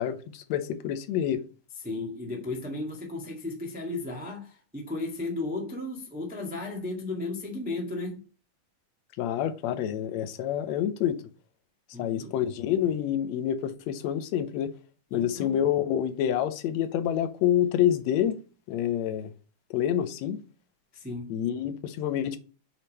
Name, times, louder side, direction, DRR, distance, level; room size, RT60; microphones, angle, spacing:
voice 1, 0.0-1.4 9.2-11.2 12.0-14.7 15.1-18.4 18.7-19.3 19.7-20.4 21.3-22.4, left 10 dB, 75° left, 1.6 m, -27 dB
voice 2, 1.8-8.2 11.9-12.3 15.1-15.6 20.9-21.3, left 2 dB, 10° right, 0.4 m, -34 dB
8.4 x 3.6 x 4.2 m
omnidirectional pair, 3.8 m